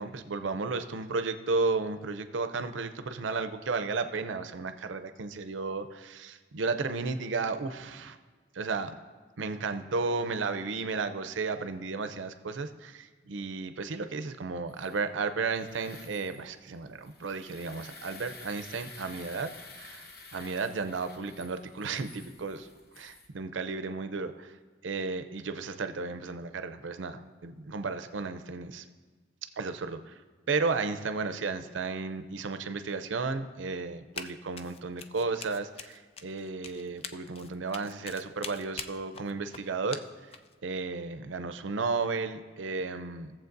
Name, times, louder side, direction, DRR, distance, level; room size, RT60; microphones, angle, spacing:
voice 1, 0.0-8.2 8.5-8.9 9.4-20.0 20.3-22.7 23.0-24.5 24.8-28.8 29.6-30.1 30.5-40.0 40.6-43.3, right 4 dB, 90° right, 9 dB, 0.6 m, -33 dB
sound 1, 14.7-23.3, left 3 dB, 55° left, 1.0 m, -51 dB
Run, 34.2-34.3 34.6-40.5, left 6 dB, 30° left, 0.3 m, -43 dB
17.5 x 7.3 x 2.6 m, 1.4 s
head